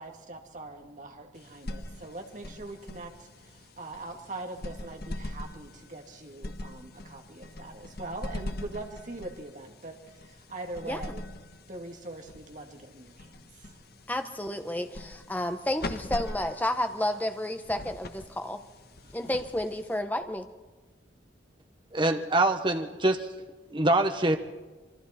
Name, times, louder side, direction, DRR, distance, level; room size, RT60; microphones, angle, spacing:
voice 1, 0.0-11.3 11.7-13.8 19.0-19.4, right 2 dB, 45° right, 3 dB, 2.1 m, -42 dB
sound 1, 1.3-20.2, left 1 dB, 55° left, 1.3 m, -42 dB
voice 2, 14.1-18.6 19.1-20.5, left 1 dB, 10° left, 7 dB, 1.1 m, -31 dB
voice 3, 21.9-23.3 23.7-24.4, right 2 dB, 25° right, 6 dB, 1.2 m, -24 dB
26.0 x 24.0 x 4.4 m, 1.2 s
head